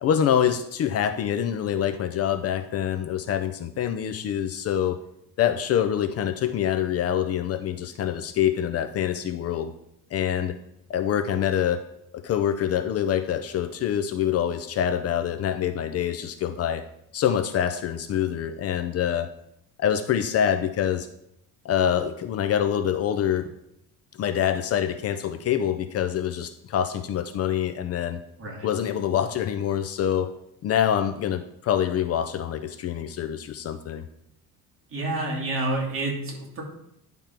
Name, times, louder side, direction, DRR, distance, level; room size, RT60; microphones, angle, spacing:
voice 1, 0.0-5.0 5.4-9.7 10.1-10.6 10.9-11.8 12.1-16.9 17.1-19.3 19.8-21.1 21.6-23.5 24.2-28.2 28.6-30.3 30.6-34.1, left 9 dB, 45° left, 9 dB, 0.5 m, -25 dB
voice 2, 34.9-36.6, right 2 dB, 35° right, -1 dB, 2.4 m, -29 dB
10.5 x 3.6 x 5.7 m, 0.78 s
cardioid pair, 150°, 35 cm